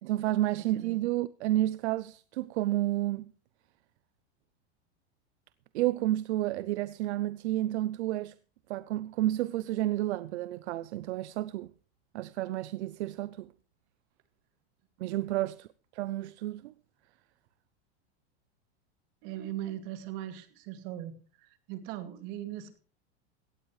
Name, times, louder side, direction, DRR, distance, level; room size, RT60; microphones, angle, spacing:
voice 1, 0.0-3.3 5.7-8.3 8.7-11.7 12.1-13.5 15.0-15.7 15.9-16.7, right 15 dB, 75° right, 0.7 m, -30 dB
voice 2, 19.2-21.1 21.4-22.8, right 12 dB, 55° right, 2.4 m, -39 dB
17.0 x 14.0 x 3.2 m
supercardioid pair, 140°, 33 cm